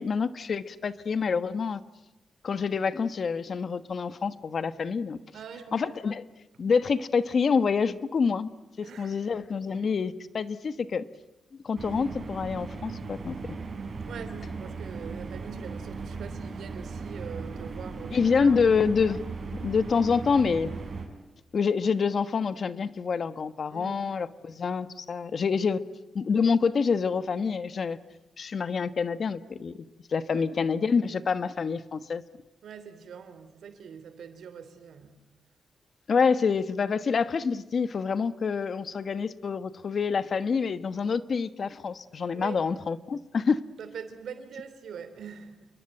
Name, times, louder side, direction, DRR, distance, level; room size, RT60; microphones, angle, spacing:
voice 1, 0.0-1.8 2.4-5.2 5.7-6.2 6.6-8.5 9.0-11.0 11.6-13.4 18.1-19.2 19.5-20.7 21.5-25.8 26.1-28.0 28.4-29.7 30.1-32.2 36.1-43.6, left 5 dB, 55° left, 1.3 m, -27 dB
voice 2, 5.3-5.9 8.8-9.2 14.1-18.7 23.7-24.1 30.3-30.5 32.6-35.2 42.3-42.6 43.8-45.7, right 7 dB, 80° right, 3.3 m, -43 dB
sound 1, 11.8-21.1, right 4 dB, 50° right, 6.9 m, -37 dB
29.0 x 22.0 x 9.0 m
cardioid pair, 90°, 0 cm